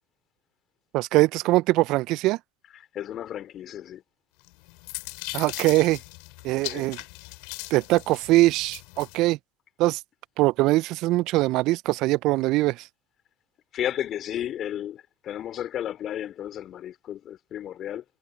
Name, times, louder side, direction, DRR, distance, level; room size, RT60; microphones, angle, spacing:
voice 1, 0.9-2.4 5.3-6.0 6.4-7.0 7.7-9.4 9.8-10.0 10.4-12.9, right 19 dB, 55° right, 0.7 m, -22 dB
voice 2, 2.9-4.0 6.7-6.8 13.7-18.0, left 11 dB, 45° left, 4.1 m, -33 dB
sound 1, 4.4-9.2, left 34 dB, 65° left, 3.8 m, -39 dB
hypercardioid pair, 70°, 0 cm